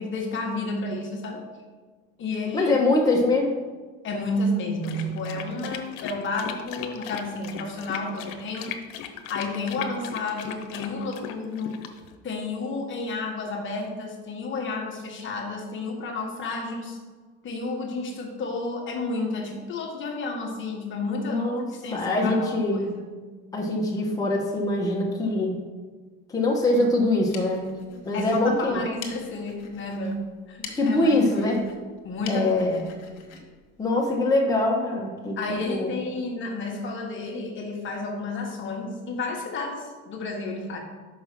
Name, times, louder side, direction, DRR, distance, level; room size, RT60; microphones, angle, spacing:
voice 1, 0.0-1.4 2.2-2.7 4.0-8.7 9.3-11.7 12.2-17.0 17.4-22.6 22.9-23.1 28.1-31.7 32.0-32.8 35.4-40.8, left 2 dB, 40° left, 1 dB, 1.4 m, -31 dB
voice 2, 2.5-3.5 21.3-21.7 21.9-22.9 23.5-25.6 26.3-28.8 30.7-31.6 32.3-32.8 33.8-35.9, left 2 dB, 10° left, -2 dB, 1.2 m, -23 dB
sound 1, 4.8-12.1, left 9 dB, 85° left, 0.8 m, -38 dB
sound 2, 27.0-34.5, left 6 dB, 65° left, 1.6 m, -46 dB
5.4 x 5.4 x 6.0 m, 1.4 s
supercardioid pair, 115°, 29 cm